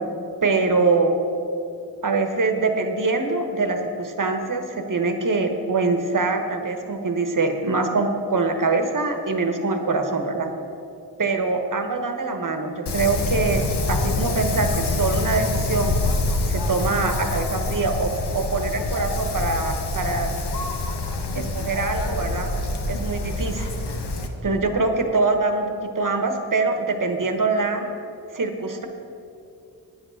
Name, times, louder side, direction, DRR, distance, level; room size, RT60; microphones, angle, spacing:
voice 1, 0.4-1.2 2.0-10.5 11.2-13.6 13.9-16.0 16.5-20.3 21.3-22.5 22.9-23.7 24.4-27.9 28.3-28.9, right 3 dB, 50° right, 6 dB, 1.2 m, -24 dB
Wind, 12.9-24.3, left 2 dB, 75° left, 1.0 m, -26 dB
9.5 x 8.0 x 6.3 m, 2.7 s
wide cardioid pair, 75°, 41 cm